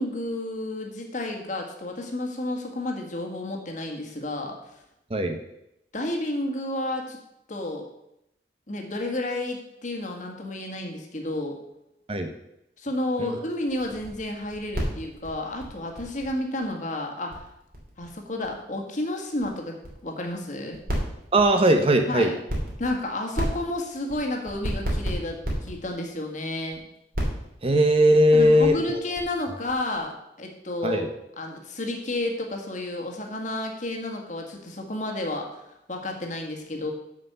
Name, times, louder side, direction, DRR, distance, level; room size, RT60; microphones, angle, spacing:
voice 1, 0.0-4.5 5.9-7.2 7.5-7.9 8.7-11.6 12.8-17.4 18.0-20.8 22.1-22.4 22.8-26.8 28.3-31.1 31.4-35.6 35.9-36.9, left 1 dB, 45° left, 2 dB, 1.7 m, -31 dB
sound 1, 13.7-16.6 16.9-17.0 17.2-18.5 18.7-18.8 19.2-19.5 19.8-19.9 20.1-20.4 20.7-21.6 22.4-23.0 23.3-26.1 26.5-26.8 27.1-30.0, right 1 dB, 50° right, 3.0 m, -31 dB
voice 2, 21.3-22.3 27.6-29.0 30.8-31.1, equal, 30° right, 6 dB, 0.8 m, -19 dB
7.4 x 6.4 x 6.8 m, 0.83 s
head